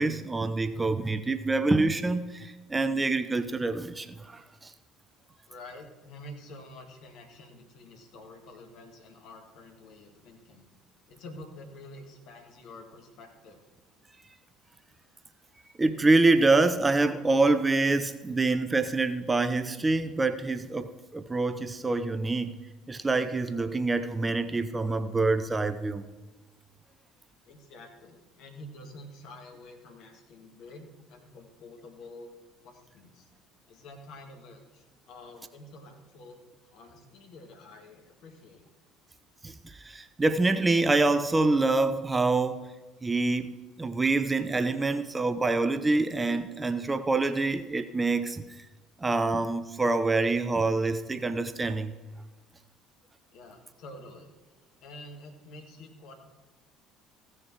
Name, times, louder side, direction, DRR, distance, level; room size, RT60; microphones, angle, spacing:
voice 1, 0.0-4.7 15.8-22.5 22.9-26.0 39.4-42.7 43.0-43.5 43.8-48.7 49.0-51.9, right 3 dB, 15° right, 11 dB, 0.6 m, -26 dB
voice 2, 5.4-10.6 11.1-13.6 27.4-32.3 32.6-33.3 33.7-38.6 53.3-54.3 54.8-56.1, left 1 dB, 55° left, 3 dB, 1.9 m, -48 dB
15.5 x 6.5 x 4.6 m, 1.3 s
figure-of-eight pair, 60°, 0 cm